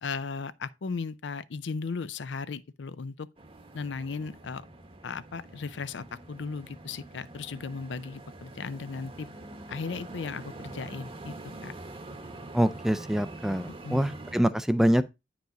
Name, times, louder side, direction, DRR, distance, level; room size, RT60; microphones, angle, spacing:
voice 1, 0.0-3.3 3.7-4.6 5.0-9.3 9.7-11.3 11.6-11.7 13.8-14.2, left 4 dB, 75° left, 0.5 m, -36 dB
sound 1, 3.4-14.4, right 2 dB, 30° right, 0.9 m, -45 dB
voice 2, 12.5-15.0, equal, ahead, 0.3 m, -25 dB
9.3 x 4.8 x 3.8 m
head